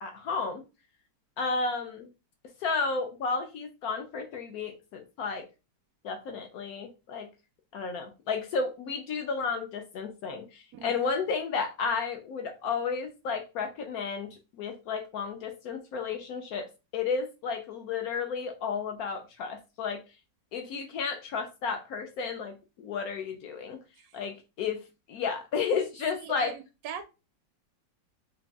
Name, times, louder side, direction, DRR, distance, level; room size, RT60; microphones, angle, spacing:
voice 1, 0.0-0.6 1.4-2.1 2.6-5.5 6.0-7.3 7.7-20.0 20.5-23.8 24.1-26.6, left 5 dB, 70° left, 0.9 m, -32 dB
voice 2, 26.2-27.1, right 8 dB, 75° right, 0.8 m, -40 dB
4.0 x 2.2 x 3.4 m
omnidirectional pair, 2.0 m